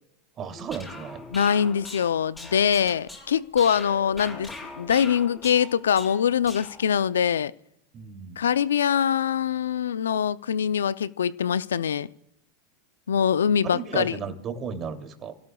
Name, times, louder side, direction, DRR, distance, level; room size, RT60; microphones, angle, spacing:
voice 1, 0.4-1.2 7.9-8.4 13.7-15.3, right 6 dB, 35° right, 6 dB, 2.8 m, -34 dB
sound 1, 0.5-6.9, left 2 dB, 10° left, 7.8 m, -42 dB
voice 2, 1.3-4.5 4.8-7.5 8.4-12.1 13.1-14.2, left 8 dB, 85° left, 17 dB, 0.5 m, -23 dB
29.5 x 17.0 x 2.3 m, 0.76 s
hypercardioid pair, 100°, 0 cm